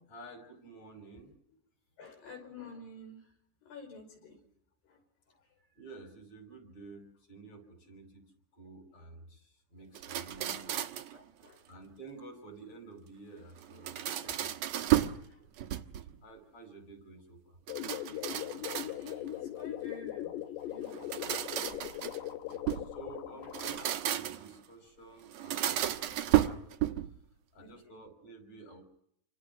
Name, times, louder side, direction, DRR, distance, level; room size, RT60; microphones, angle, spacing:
voice 1, 0.1-1.3 5.7-10.8 11.4-14.0 14.3-14.5 14.9-15.5 16.2-17.6 22.5-26.7 27.1-27.2 27.5-28.8, right 3 dB, 40° left, 5 dB, 6.6 m, -51 dB
voice 2, 2.0-3.3 3.6-4.4 4.8-5.0 5.3-5.5 10.8-10.9 11.1-11.7 14.2-14.4 15.0-15.4 18.9-21.1 21.9-22.2 23.3-23.4 27.6-28.0, left 3 dB, 70° left, 4 dB, 7.4 m, -51 dB
sound 1, 10.0-11.2 13.6-15.2 15.6-16.2 17.7-19.3 20.9-22.9 23.4-24.6 25.3-27.2, right 13 dB, 85° right, 1.5 m, -32 dB
sound 2, 17.7-23.9, left 13 dB, 85° left, 3.6 m, -40 dB
28.0 x 25.0 x 6.0 m, 0.72 s
omnidirectional pair, 4.9 m